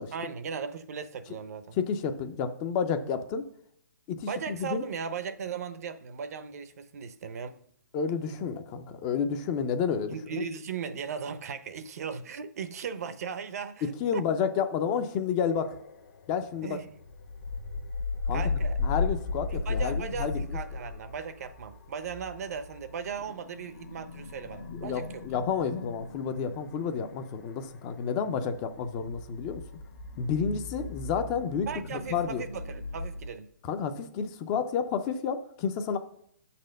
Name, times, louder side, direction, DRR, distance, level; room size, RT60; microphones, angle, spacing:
voice 1, 0.1-1.8 4.3-7.6 10.1-14.2 16.6-16.9 18.3-18.8 19.5-25.2 31.7-33.5, right 6 dB, 50° right, 0.6 m, -37 dB
voice 2, 1.8-3.4 4.1-4.8 7.9-10.4 13.8-15.8 16.3-16.8 18.3-20.6 24.8-29.6 30.2-32.4 33.6-36.0, left 6 dB, 20° left, 0.4 m, -30 dB
sound 1, 15.5-33.3, left 4 dB, 65° left, 1.2 m, -37 dB
6.1 x 4.2 x 6.4 m
hypercardioid pair, 160°, 10 cm